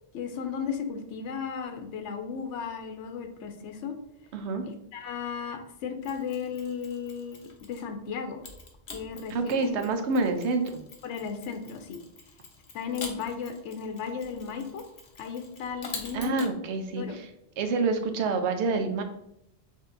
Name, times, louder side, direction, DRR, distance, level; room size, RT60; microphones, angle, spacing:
voice 1, 0.1-4.0 4.6-8.4 8.9-9.8 11.0-12.0 12.7-14.8 15.2-16.5 16.9-17.2, left 6 dB, 85° left, 6 dB, 0.9 m, -35 dB
voice 2, 4.3-4.6 9.3-10.8 16.1-17.3 17.6-19.0, right 3 dB, 80° right, 6 dB, 0.9 m, -27 dB
Mechanisms, 6.0-7.9 8.4-16.5, left 4 dB, 55° left, 1.0 m, -46 dB
6.3 x 2.7 x 2.5 m, 0.80 s
omnidirectional pair, 1.2 m